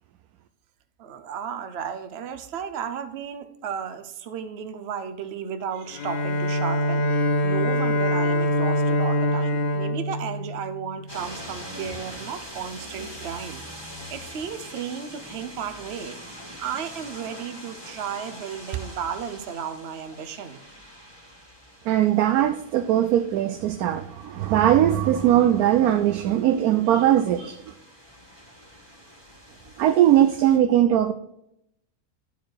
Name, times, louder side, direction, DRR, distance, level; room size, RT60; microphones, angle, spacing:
voice 1, 1.0-7.1 7.4-13.6 14.1-16.2 16.6-20.6, right 7 dB, 55° right, 10 dB, 0.9 m, -34 dB
Bowed string instrument, 5.9-11.1, left 1 dB, 65° left, 1.1 m, -24 dB
sound 1, 11.1-30.6, equal, 15° left, 1.7 m, -43 dB
voice 2, 21.9-27.6 29.8-31.1, right 11 dB, 85° right, 9 dB, 1.1 m, -20 dB
11.0 x 4.7 x 4.6 m, 0.77 s
omnidirectional pair, 1.6 m